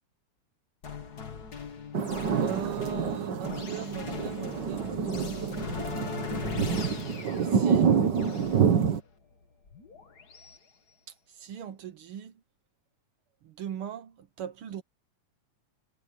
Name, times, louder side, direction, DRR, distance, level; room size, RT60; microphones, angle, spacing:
sound 1, 0.8-10.6, left 5 dB, 35° left, 2.1 m, -40 dB
sound 2, 1.9-9.0, right 7 dB, 50° right, 1.5 m, -27 dB
voice 1, 2.4-5.7 7.4-7.9 11.3-12.3 13.4-14.8, right 9 dB, 65° right, 1.4 m, -39 dB
omnidirectional pair, 3.4 m